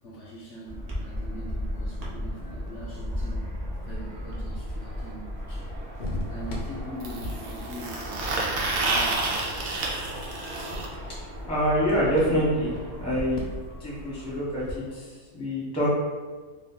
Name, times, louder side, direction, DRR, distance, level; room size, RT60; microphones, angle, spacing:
voice 1, 0.0-5.7 6.3-9.5, right 1 dB, 65° left, -4 dB, 0.8 m, -42 dB
sound 1, 0.7-14.8, equal, 50° right, 0.4 m, -36 dB
sound 2, 5.0-5.1 7.0-10.9 12.8-12.9 13.2-13.3 13.5-13.7 14.6-14.7, right 2 dB, 80° right, 1.1 m, -29 dB
sound 3, 6.0-13.4, left 2 dB, 85° left, 0.4 m, -41 dB
voice 2, 11.4-13.4 13.8-16.0, equal, 5° left, -6 dB, 0.6 m, -26 dB
2.7 x 2.4 x 3.6 m, 1.4 s
omnidirectional pair, 1.5 m